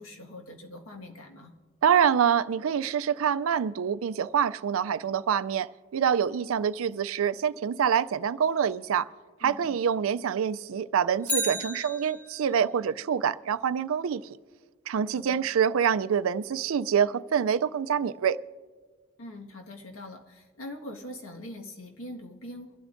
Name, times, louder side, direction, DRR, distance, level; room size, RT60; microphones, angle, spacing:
voice 1, 0.0-1.5 9.4-9.6 15.1-15.4 19.2-22.8, left 1 dB, 80° left, 1.6 m, -43 dB
voice 2, 1.8-9.1 9.4-14.2 14.9-18.4, right 8 dB, 80° right, 0.4 m, -26 dB
Bicycle, 11.2-12.6 20.9-21.0, equal, 5° left, 0.7 m, -33 dB
23.0 x 12.5 x 2.6 m
head